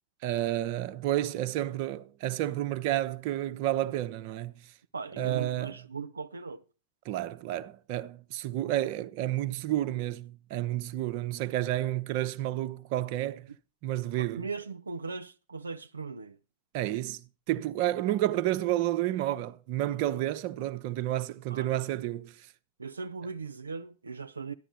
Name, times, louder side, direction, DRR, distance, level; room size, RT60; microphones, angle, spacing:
voice 1, 0.2-4.7 5.2-5.8 7.0-13.5 13.8-14.5 16.7-17.2 17.5-22.5, right 14 dB, 45° right, 0.8 m, -30 dB
voice 2, 4.9-6.6 14.1-16.4 18.1-18.2 21.5-21.7 22.8-24.5, right 4 dB, 75° right, 0.7 m, -39 dB
14.0 x 11.0 x 4.1 m
figure-of-eight pair, 90°, 0 cm